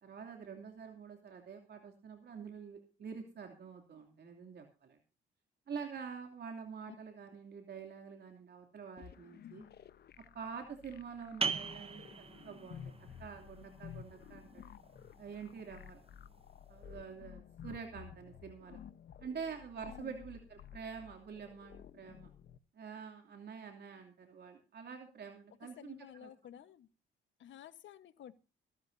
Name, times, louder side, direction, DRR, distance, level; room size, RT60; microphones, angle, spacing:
voice 1, 0.0-5.0 5.7-9.7 10.3-12.9 13.2-14.6 15.2-16.0 16.7-18.8 19.2-22.3 22.7-26.3, right 6 dB, 55° right, 3 dB, 2.9 m, -47 dB
sound 1, 9.0-22.6, left 9 dB, 55° left, 1.0 m, -53 dB
voice 2, 9.4-9.8 19.8-20.2 25.8-26.9 27.4-28.3, left 10 dB, 70° left, 13 dB, 1.3 m, -53 dB
sound 2, 11.4-16.8, right 5 dB, 30° right, 1.1 m, -42 dB
23.0 x 12.5 x 2.7 m, 0.32 s
cardioid pair, 90°, 20 cm